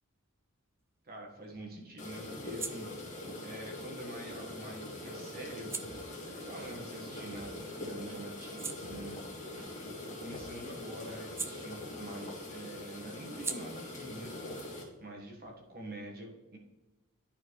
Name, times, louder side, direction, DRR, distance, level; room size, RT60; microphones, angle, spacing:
sound 1, 0.8-7.7 8.1-12.3 12.6-16.0, right 4 dB, 10° right, 0.3 m, -47 dB
voice 1, 1.0-2.9 3.4-5.8 6.2-9.2 9.8-14.4 15.0-16.6, right 1 dB, 45° right, 0 dB, 1.4 m, -46 dB
sound 2, 2.0-14.8, left 1 dB, 35° left, 1.7 m, -43 dB
sound 3, 5.8-6.0 6.6-6.7 7.3-7.5 8.1-8.2 8.8-9.0 9.6-9.7 10.3-10.5 11.1-11.2, right 1 dB, 85° right, 1.2 m, -51 dB
11.5 x 4.3 x 3.1 m, 1.1 s
head